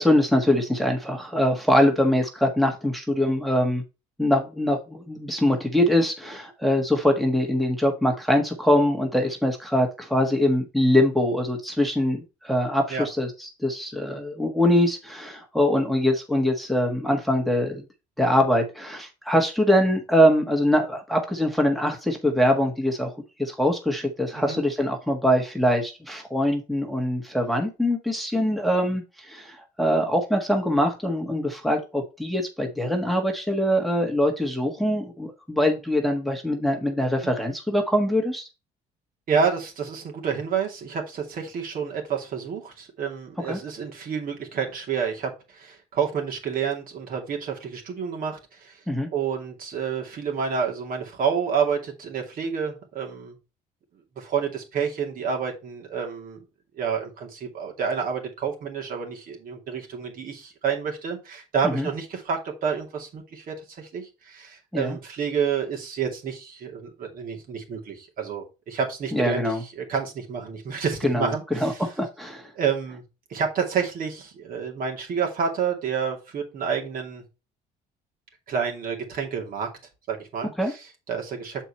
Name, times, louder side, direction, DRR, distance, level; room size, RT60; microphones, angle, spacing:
voice 1, 0.0-3.8 4.2-17.8 18.2-23.1 23.4-38.5 43.5-43.6 48.9-49.1 61.6-61.9 64.7-65.0 69.1-69.6 71.0-71.3 71.6-72.5 80.6-80.7, left 1 dB, ahead, 2 dB, 1.4 m, -23 dB
voice 2, 39.3-48.8 49.1-53.4 54.2-56.4 56.8-71.9 72.5-73.0 73.3-77.2 78.5-79.7 80.1-81.6, right 6 dB, 55° right, 2 dB, 2.5 m, -29 dB
6.8 x 4.5 x 4.2 m, 0.29 s
cardioid pair, 110°, 17 cm